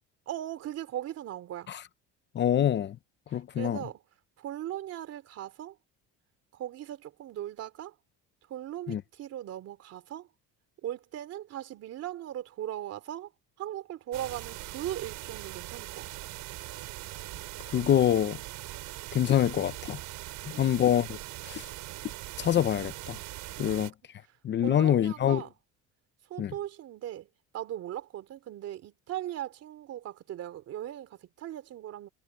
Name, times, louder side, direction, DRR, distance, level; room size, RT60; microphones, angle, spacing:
voice 1, 0.3-1.7 3.3-4.0 4.4-5.8 6.5-7.9 8.5-10.3 10.8-13.3 13.6-16.1 20.5-20.7 23.6-23.8 24.3-25.5 26.3-27.3 27.5-32.1, right 12 dB, 55° right, 3.3 m, -39 dB
voice 2, 2.3-3.0 3.3-3.8 8.9-9.0 17.7-18.4 19.1-20.0 20.5-21.2 21.5-21.7 22.4-23.2 23.6-23.9 24.4-25.4 26.4-26.5, left 10 dB, 35° left, 0.7 m, -25 dB
sound 1, 14.1-23.9, right 18 dB, 80° right, 7.1 m, -41 dB
cardioid pair, 150°, 30 cm